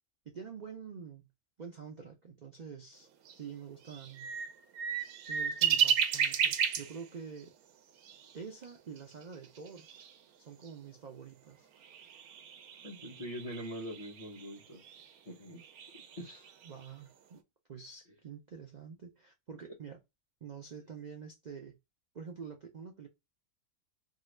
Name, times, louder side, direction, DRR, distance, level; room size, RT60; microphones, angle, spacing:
voice 1, 0.3-1.3 1.6-4.3 5.2-7.5 8.3-9.9 10.4-11.7 16.6-17.4 17.7-20.0 20.4-21.8 22.1-23.1, right 6 dB, 70° right, 0.4 m, -47 dB
sound 1, 3.2-3.3 3.9-7.0 7.4-7.5 8.0-8.3 8.6-8.7 9.0-10.1 10.6-10.7 11.8-15.1 15.6-16.9, right 8 dB, 90° right, 1.1 m, -33 dB
voice 2, 12.8-14.8 15.3-15.6 16.1-16.5, equal, 35° left, 0.6 m, -43 dB
2.7 x 2.5 x 3.1 m
omnidirectional pair, 1.5 m